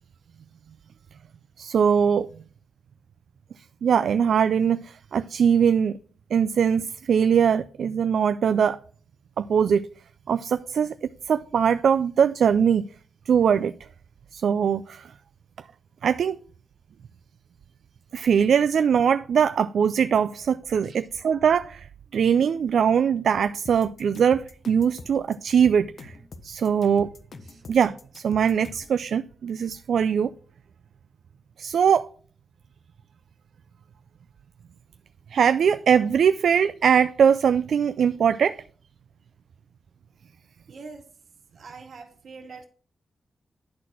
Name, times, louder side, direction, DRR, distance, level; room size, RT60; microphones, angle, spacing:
voice 1, 1.6-2.3 3.8-5.9 6.3-8.8 9.4-9.8 10.3-10.9 11.3-12.9 13.3-13.7 14.3-15.1 16.0-16.4 18.1-21.9 22.1-26.1 26.4-27.1 27.7-30.3 31.6-32.1 35.3-38.6, right 7 dB, 80° right, 0.3 m, -21 dB
sound 1, 23.7-29.0, left 3 dB, 55° left, 1.0 m, -44 dB
voice 2, 40.7-41.1 41.5-42.7, right 4 dB, 65° right, 2.1 m, -44 dB
11.0 x 4.1 x 6.0 m
wide cardioid pair, 135°, 0 cm